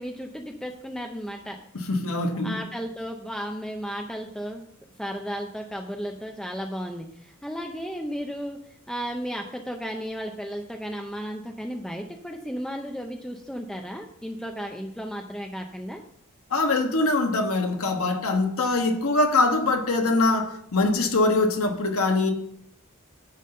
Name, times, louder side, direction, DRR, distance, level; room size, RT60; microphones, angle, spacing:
voice 1, 0.0-1.6 2.3-4.6 5.0-8.6 8.9-16.0, equal, 5° left, 0.6 m, -34 dB
voice 2, 1.7-2.6 16.5-22.3, left 2 dB, 75° left, 1.2 m, -23 dB
10.0 x 4.0 x 6.5 m
head